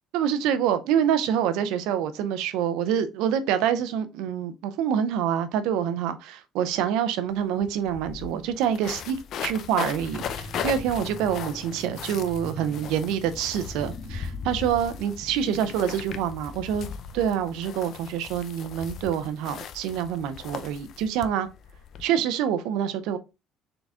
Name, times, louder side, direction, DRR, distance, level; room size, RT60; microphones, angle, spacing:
voice 1, 0.1-16.9 17.1-21.5 22.0-23.2, right 9 dB, 85° right, 0.6 m, -26 dB
sound 1, 7.3-7.4 7.6-22.0, left 8 dB, 60° left, 0.5 m, -38 dB
sound 2, 10.0-18.1, equal, 5° left, 1.6 m, -43 dB
3.9 x 3.6 x 3.4 m
cardioid pair, 105°, 0 cm